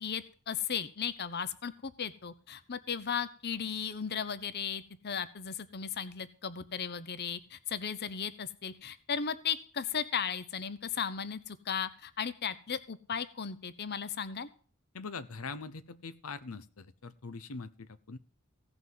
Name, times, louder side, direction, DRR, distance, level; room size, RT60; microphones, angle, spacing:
voice 1, 0.0-14.5, left 7 dB, 50° left, 14 dB, 0.8 m, -36 dB
voice 2, 14.9-18.2, left 4 dB, 80° left, 13 dB, 0.8 m, -43 dB
16.5 x 6.0 x 7.6 m, 0.42 s
head